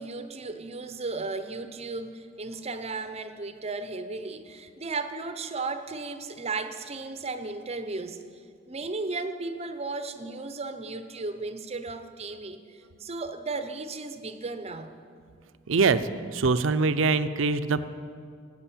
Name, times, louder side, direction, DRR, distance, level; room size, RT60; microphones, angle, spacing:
voice 1, 0.0-8.2 8.7-15.0, right 3 dB, 30° right, 9 dB, 0.7 m, -35 dB
voice 2, 15.7-16.0 16.3-17.9, right 4 dB, 70° right, 12 dB, 0.6 m, -23 dB
18.5 x 8.1 x 7.3 m, 2.3 s
head